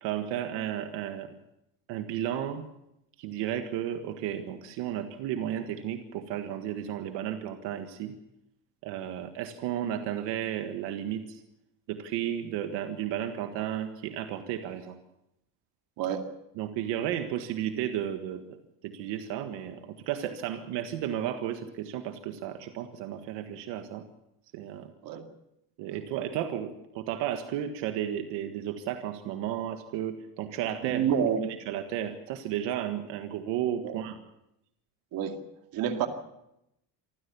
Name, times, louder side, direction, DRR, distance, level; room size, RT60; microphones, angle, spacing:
voice 1, 0.0-1.3 1.9-2.6 3.2-8.1 8.8-11.4 11.9-15.0 16.6-18.4 18.8-24.0 24.5-24.9 25.8-31.0 31.4-34.2, right 10 dB, 80° right, 6 dB, 1.7 m, -33 dB
voice 2, 16.0-16.3 25.0-25.2 30.9-31.4 33.8-34.0 35.1-35.4 35.7-36.1, right 8 dB, 55° right, 5 dB, 2.4 m, -28 dB
26.0 x 15.0 x 7.0 m, 0.84 s
cardioid pair, 160°, 42 cm